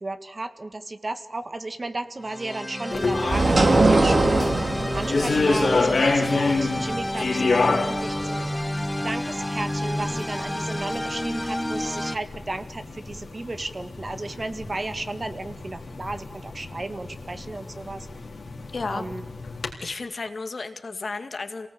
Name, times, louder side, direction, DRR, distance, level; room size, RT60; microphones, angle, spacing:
voice 1, 0.0-4.4 4.9-8.5 9.0-18.1 18.9-19.3, right 2 dB, 40° right, 9 dB, 1.8 m, -34 dB
sound 1, 2.2-12.2, left 1 dB, 10° left, 0.8 m, -30 dB
sound 2, 2.9-19.7, left 3 dB, 75° left, 4.0 m, -29 dB
sound 3, 3.3-8.5, right 2 dB, 60° right, 3.3 m, -22 dB
voice 2, 18.7-19.0 19.8-21.7, left 3 dB, 60° left, 8 dB, 2.0 m, -32 dB
27.5 x 18.5 x 8.7 m, 1.0 s
wide cardioid pair, 95°, 0 cm